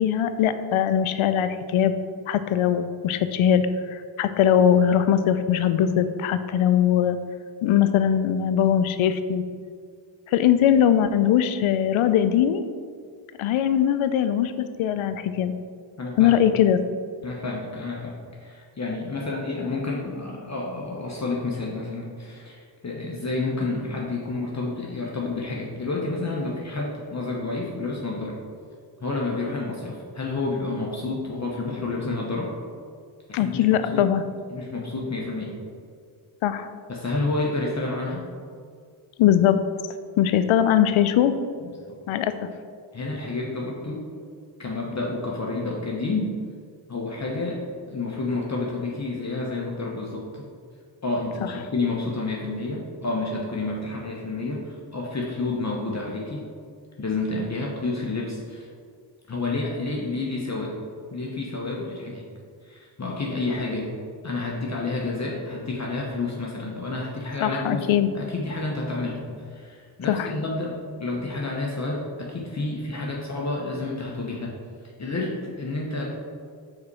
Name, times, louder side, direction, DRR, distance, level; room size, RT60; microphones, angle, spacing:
voice 1, 0.0-2.0 2.3-7.2 7.6-9.4 10.3-12.6 13.4-15.5 16.2-16.8 33.3-34.2 36.4-36.7 39.2-39.6 40.2-41.4 42.1-42.3 67.4-68.1 70.1-70.3, left 9 dB, 75° left, 11 dB, 0.6 m, -21 dB
voice 2, 16.0-16.4 17.2-18.2 18.4-28.4 29.0-32.5 33.3-33.6 33.9-34.1 34.5-35.5 36.9-38.3 41.6-42.0 42.9-44.0 44.6-46.3 46.9-50.4 51.0-56.4 57.0-58.7 59.3-60.8 61.1-62.3 62.6-63.9 64.2-67.9 68.1-74.5 75.0-76.0, left 3 dB, 35° left, -2 dB, 1.1 m, -29 dB
4.8 x 4.3 x 4.7 m, 2.1 s
supercardioid pair, 45°, 49 cm